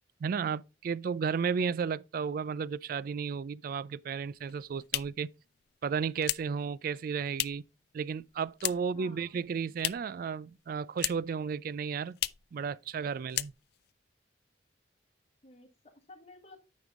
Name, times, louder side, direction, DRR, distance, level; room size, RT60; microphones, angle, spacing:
voice 1, 0.2-5.3 5.8-7.6 7.9-12.2 12.5-13.5, right 6 dB, 50° right, 0.3 m, -33 dB
sound 1, 4.3-7.8 8.1-9.0 9.3-10.2 10.5-11.4 11.7-11.8 12.1-12.5 12.9-13.0 13.3-13.9, left 16 dB, 60° left, 0.3 m, -36 dB
voice 2, 8.7-9.3 15.4-16.6, left 2 dB, 35° left, 1.6 m, -54 dB
9.3 x 5.4 x 3.6 m
head